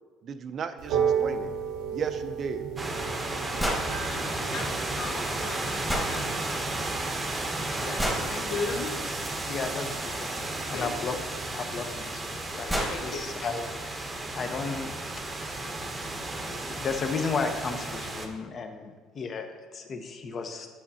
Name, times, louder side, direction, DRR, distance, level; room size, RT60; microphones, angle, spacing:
voice 1, 0.2-1.5 1.9-2.7, right 6 dB, 45° right, 10 dB, 0.4 m, -35 dB
sound 1, 0.8-6.8, right 7 dB, 90° right, 0.9 m, -33 dB
sound 2, 2.8-18.3, right 2 dB, 20° right, 0.8 m, -33 dB
voice 2, 3.6-6.6 7.8-8.9 10.7-11.2 12.8-13.2, left 4 dB, 75° left, 2 dB, 1.2 m, -38 dB
sound 3, 3.6-3.9 5.9-6.1 8.0-8.3 10.5-10.6 12.0-12.1 12.4-12.5 12.7-13.0, equal, ahead, 1.3 m, -28 dB
voice 3, 9.5-11.2 11.5-12.7 13.0-13.6 13.9-15.7 16.4-20.7, left 5 dB, 40° left, 6 dB, 0.8 m, -34 dB
8.4 x 7.2 x 2.8 m, 1.4 s
cardioid pair, 115°, 0 cm